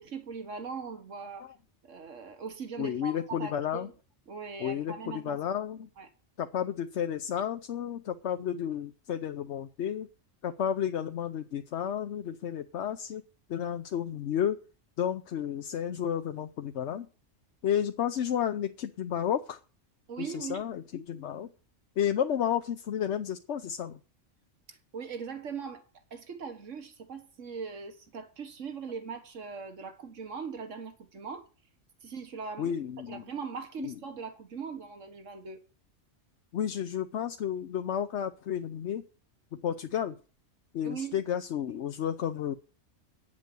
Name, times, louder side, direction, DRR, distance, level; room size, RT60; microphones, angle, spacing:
voice 1, 0.0-1.5 1.8-3.9 4.3-5.4 6.0-6.1 20.1-20.6 24.7-25.8 26.1-31.5 32.0-32.7 33.1-35.6 40.8-41.2, right 5 dB, 75° right, 1.9 m, -40 dB
voice 2, 2.8-3.9 4.6-5.9 6.4-10.1 10.4-13.2 13.5-14.6 15.0-17.1 17.6-19.6 20.2-21.5 22.0-24.0 32.6-33.2 33.8-33.9 36.5-39.0 39.6-40.2 40.7-42.5, left 9 dB, 65° left, 1.0 m, -32 dB
9.4 x 7.5 x 7.7 m
omnidirectional pair, 1.3 m